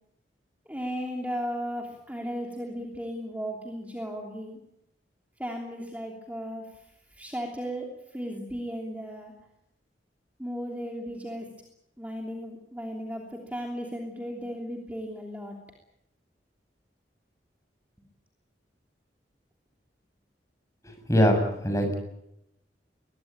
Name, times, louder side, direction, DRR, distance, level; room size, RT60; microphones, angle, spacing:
voice 1, 0.7-4.6 5.4-6.6 7.1-9.3 10.4-11.5 12.0-15.6, equal, 10° right, 1 dB, 3.1 m, -35 dB
voice 2, 21.1-22.0, equal, 20° left, 4 dB, 7.2 m, -22 dB
22.0 x 22.0 x 8.8 m, 0.82 s
head